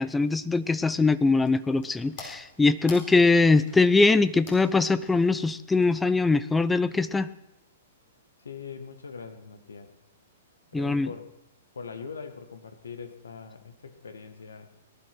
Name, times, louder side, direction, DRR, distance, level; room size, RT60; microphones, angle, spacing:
voice 1, 0.0-7.3 10.7-11.1, left 3 dB, 10° left, 15 dB, 0.5 m, -22 dB
sound 1, 1.0-6.4, left 4 dB, 45° left, 4.4 m, -49 dB
voice 2, 8.4-9.9 10.7-11.3 11.7-14.7, left 5 dB, 65° left, 9 dB, 1.7 m, -41 dB
18.5 x 12.5 x 6.0 m, 0.83 s
figure-of-eight pair, 110°, 0 cm